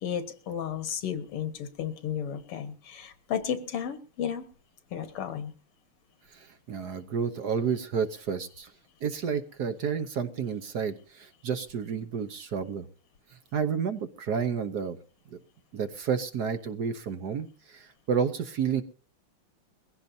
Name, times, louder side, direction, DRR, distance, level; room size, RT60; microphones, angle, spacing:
voice 1, 0.0-4.4 4.9-5.5, left 8 dB, 90° left, 10 dB, 2.3 m, -33 dB
voice 2, 6.3-8.7 9.0-12.8 13.5-15.0 15.3-15.4 15.7-18.8, right 6 dB, 55° right, 9 dB, 1.3 m, -30 dB
21.5 x 16.0 x 2.7 m, 0.40 s
omnidirectional pair, 2.4 m